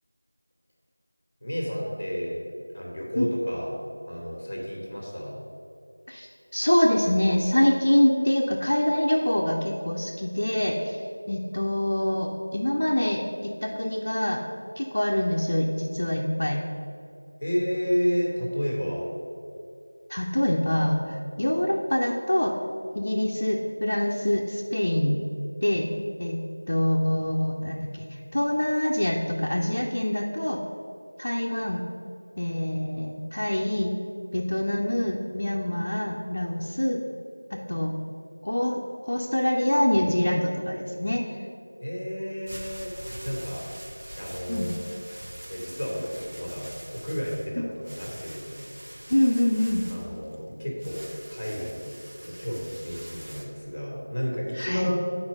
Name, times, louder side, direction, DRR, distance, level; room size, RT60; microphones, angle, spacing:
voice 1, 1.4-2.4 2.7-3.7 4.0-5.4 17.4-19.1 41.8-43.0 43.2-43.6 44.1-44.9 45.5-48.7 49.9-55.0, equal, ahead, -22 dB, 2.0 m, -31 dB
voice 2, 6.1-11.0 11.3-13.3 13.6-14.4 14.8-16.6 20.1-22.6 22.9-25.2 25.6-25.9 26.2-28.1 28.3-30.6 31.2-31.9 32.4-33.9 34.3-37.0 37.7-37.9 38.4-41.3 44.5-44.7 47.6-47.7 49.1-49.8 54.6-54.9, left 1 dB, 45° left, -2 dB, 0.6 m, -25 dB
sound 1, 42.2-53.4, equal, 40° right, 1.0 m, -44 dB
9.6 x 4.4 x 5.4 m, 2.6 s
figure-of-eight pair, 175°, 0 cm